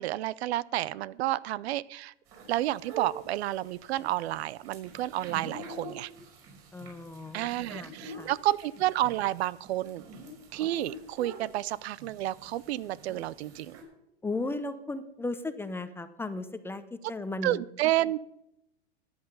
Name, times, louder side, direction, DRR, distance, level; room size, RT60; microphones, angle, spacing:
voice 1, 0.0-2.1 2.5-6.1 7.3-10.0 10.5-13.8 17.4-18.2, right 15 dB, 70° right, 21 dB, 0.6 m, -30 dB
sound 1, 2.3-13.8, right 2 dB, 45° right, 5.7 m, -46 dB
voice 2, 6.7-8.3 14.2-17.6, left 2 dB, 5° left, 11 dB, 0.7 m, -36 dB
14.5 x 10.5 x 5.4 m, 0.84 s
hypercardioid pair, 130°, 33 cm